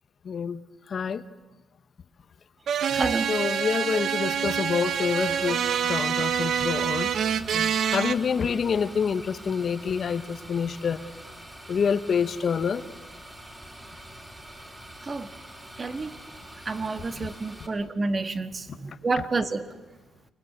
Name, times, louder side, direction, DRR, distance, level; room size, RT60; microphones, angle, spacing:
voice 1, 0.2-0.6 0.9-1.2 3.3-7.1 7.5-11.0 11.7-12.8, left 6 dB, 50° left, 1.3 m, -27 dB
sound 1, 2.7-8.1, right 8 dB, 60° right, 1.2 m, -26 dB
voice 2, 2.9-3.3 15.1-15.3 15.8-16.1 16.7-19.6, right 3 dB, 30° right, 1.8 m, -29 dB
sound 2, 4.9-17.7, right 1 dB, 15° right, 5.6 m, -45 dB
29.5 x 23.5 x 8.2 m
cardioid pair, 90°, 0 cm